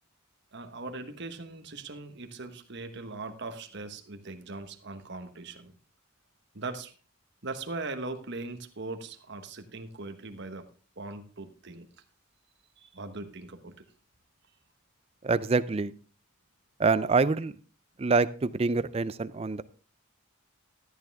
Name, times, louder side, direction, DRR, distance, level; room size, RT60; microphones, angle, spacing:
voice 1, 0.5-5.7 6.5-6.9 7.4-10.7 11.0-11.9 12.8-13.7, right 3 dB, 50° right, 7 dB, 1.2 m, -40 dB
voice 2, 15.2-15.9 16.8-17.5 18.0-19.6, right 4 dB, 25° right, 15 dB, 0.4 m, -26 dB
13.0 x 9.2 x 3.5 m, 0.37 s
head